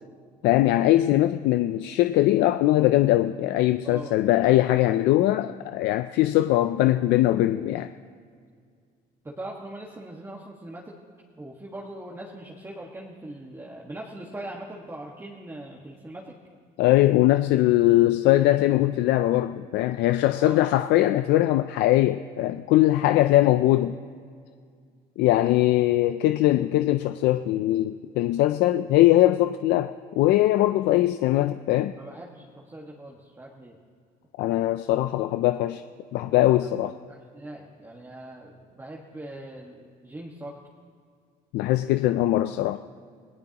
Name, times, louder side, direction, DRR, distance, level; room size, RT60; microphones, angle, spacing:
voice 1, 0.4-7.9 16.8-24.0 25.2-31.9 34.4-35.8 36.1-37.0 41.5-42.8, left 15 dB, 85° left, 10 dB, 0.5 m, -21 dB
voice 2, 3.8-4.2 9.2-10.9 11.4-16.3 20.4-20.6 32.0-33.8 36.6-36.8 37.1-40.6, right 1 dB, 15° right, -2 dB, 1.6 m, -41 dB
27.5 x 17.5 x 2.9 m, 2.1 s
cardioid pair, 110°, 17 cm